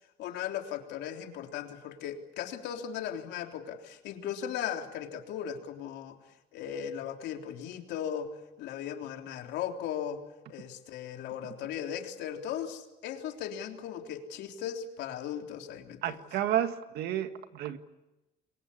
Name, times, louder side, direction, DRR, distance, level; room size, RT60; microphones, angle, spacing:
voice 1, 0.2-6.2 6.5-8.3 8.6-10.2 10.5-16.0, left 9 dB, 75° left, 3 dB, 3.5 m, -37 dB
voice 2, 16.0-17.8, right 11 dB, 65° right, 8 dB, 1.9 m, -31 dB
28.5 x 23.5 x 8.6 m, 0.99 s
cardioid pair, 170°, 18 cm